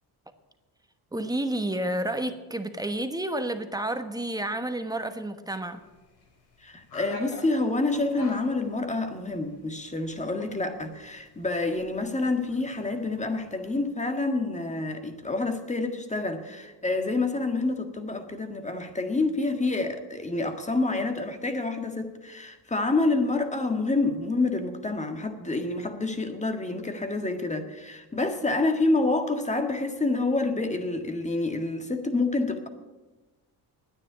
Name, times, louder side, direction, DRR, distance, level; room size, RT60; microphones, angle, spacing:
voice 1, 1.1-5.9, right 1 dB, 10° right, 1.2 m, -30 dB
sound 1, 5.6-13.8, left 3 dB, 70° left, 4.8 m, -48 dB
voice 2, 6.6-32.7, left 2 dB, 15° left, 1.7 m, -28 dB
9.8 x 9.7 x 10.0 m
cardioid pair, 105°, 39 cm